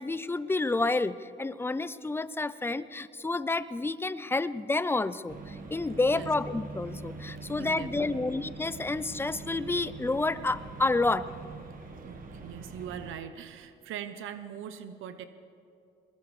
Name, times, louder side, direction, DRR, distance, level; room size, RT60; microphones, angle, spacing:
voice 1, 0.0-11.3, left 3 dB, 10° left, 15 dB, 0.5 m, -29 dB
sound 1, 5.3-13.1, right 3 dB, 45° right, 1.5 m, -43 dB
voice 2, 7.6-8.2 12.0-15.3, right 9 dB, 85° right, 10 dB, 0.8 m, -41 dB
21.0 x 21.0 x 3.3 m, 2.4 s
cardioid pair, 90°, 20 cm